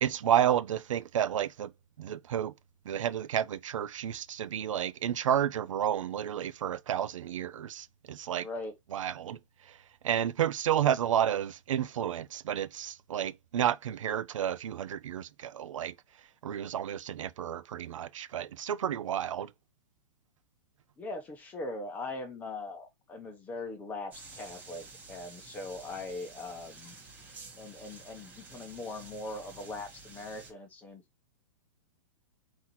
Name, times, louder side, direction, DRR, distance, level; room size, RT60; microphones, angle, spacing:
voice 1, 0.0-1.7 2.0-2.5 2.9-8.5 8.9-9.4 10.0-15.9 16.4-19.5, right 10 dB, 90° right, 0.6 m, -31 dB
voice 2, 8.4-8.7 21.0-26.9 27.6-31.0, left 2 dB, 10° left, 0.9 m, -40 dB
sound 1, 24.1-30.5, right 3 dB, 10° right, 1.1 m, -50 dB
4.1 x 2.9 x 4.1 m
hypercardioid pair, 170°, 16 cm